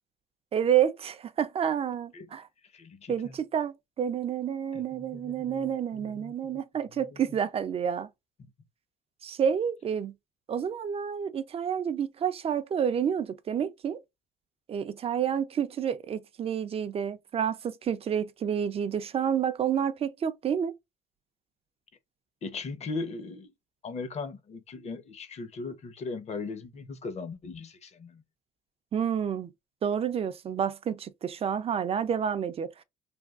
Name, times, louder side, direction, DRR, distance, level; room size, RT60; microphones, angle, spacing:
voice 1, 0.5-2.5 3.1-8.1 9.2-10.1 10.5-14.0 14.7-20.7 28.9-29.5 29.8-32.8, right 8 dB, 35° right, 0.4 m, -29 dB
voice 2, 2.7-3.3 4.7-5.7 6.0-6.6 7.1-7.2 8.4-8.5 22.4-23.5 23.8-28.2, left 4 dB, 40° left, 0.7 m, -39 dB
3.4 x 2.3 x 2.3 m
cardioid pair, 110°, 17 cm